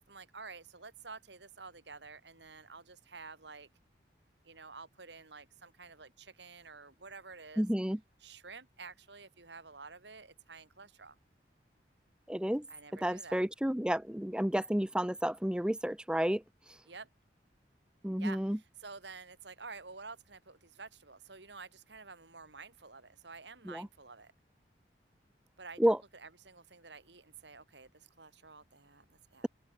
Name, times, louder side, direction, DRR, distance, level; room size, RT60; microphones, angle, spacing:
voice 1, 0.0-3.7 4.4-7.7 8.2-11.2 12.7-13.4 16.9-17.1 18.2-24.3 25.6-29.5, right 4 dB, 80° right, 3.2 m, -50 dB
voice 2, 7.6-8.0 12.3-12.6 13.0-16.4 18.0-18.6 23.7-23.9 25.8-26.0, equal, 5° right, 0.6 m, -31 dB
head